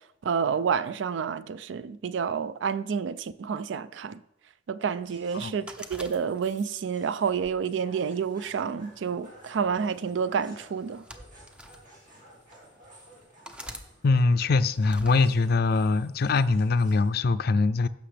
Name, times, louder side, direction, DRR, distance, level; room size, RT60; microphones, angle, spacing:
voice 1, 0.2-4.2 4.7-11.0, right 6 dB, 80° right, 0.4 m, -29 dB
sound 1, 5.0-17.1, right 1 dB, 45° right, 2.9 m, -55 dB
sound 2, 5.7-6.7 7.4-8.5 9.5-9.8 10.8-11.8 12.5-12.6 13.4-13.9 14.8-15.2, equal, 5° right, 0.6 m, -44 dB
voice 2, 14.0-17.9, left 3 dB, 55° left, 0.4 m, -23 dB
15.5 x 6.1 x 3.3 m
head